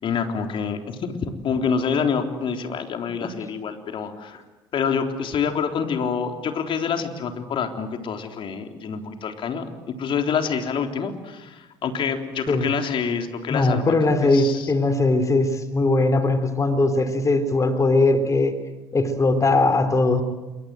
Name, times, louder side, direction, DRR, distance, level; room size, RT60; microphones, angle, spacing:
voice 1, 0.0-4.4 4.7-13.9 14.2-14.7, left 6 dB, 50° left, 5 dB, 3.7 m, -27 dB
voice 2, 13.5-18.5 18.9-20.2, left 2 dB, 30° left, 9 dB, 3.8 m, -20 dB
27.5 x 24.5 x 7.9 m, 1.1 s
hypercardioid pair, 65°, 11 cm